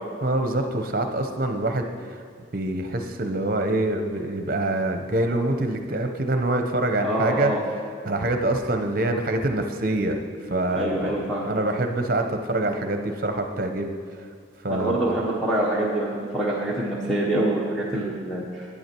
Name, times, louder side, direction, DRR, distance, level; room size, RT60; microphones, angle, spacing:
voice 1, 0.2-2.2 2.5-7.5 8.0-10.2 10.5-11.2 11.5-13.9 14.6-15.0, right 2 dB, 50° right, 5 dB, 0.8 m, -25 dB
voice 2, 7.0-7.6 10.7-11.5 14.7-18.7, right 1 dB, ahead, -6 dB, 1.0 m, -25 dB
11.0 x 8.6 x 4.5 m, 2.2 s
head